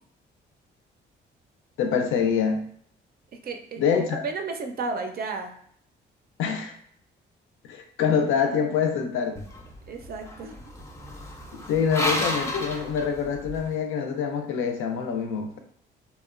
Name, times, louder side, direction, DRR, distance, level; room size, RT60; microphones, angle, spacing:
voice 1, 1.8-2.7 3.8-4.2 6.4-6.7 7.7-9.4 11.5-15.6, left 6 dB, 85° left, 5 dB, 0.4 m, -25 dB
voice 2, 3.4-3.8 4.2-5.5 9.9-10.8, right 4 dB, 50° right, 5 dB, 0.4 m, -33 dB
sound 1, 9.4-13.7, left 1 dB, 15° left, 0.4 m, -32 dB
2.8 x 2.1 x 2.4 m, 0.63 s
cardioid pair, 90°, 20 cm